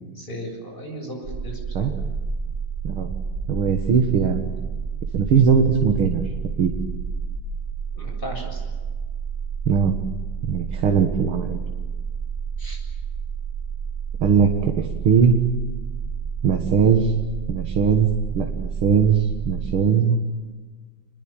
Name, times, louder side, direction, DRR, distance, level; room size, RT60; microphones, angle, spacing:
voice 1, 0.2-1.9 7.9-8.6 12.6-12.8, equal, 25° left, 1 dB, 7.8 m, -36 dB
sound 1, 1.2-19.7, right 6 dB, 65° right, 4.2 m, -30 dB
voice 2, 3.5-4.5 5.1-6.3 6.6-6.7 9.7-9.9 10.4-11.6 14.2-15.4 16.4-17.1 17.5-20.2, right 6 dB, 80° right, 4 dB, 2.5 m, -20 dB
28.5 x 21.0 x 9.0 m, 1.4 s
omnidirectional pair, 2.3 m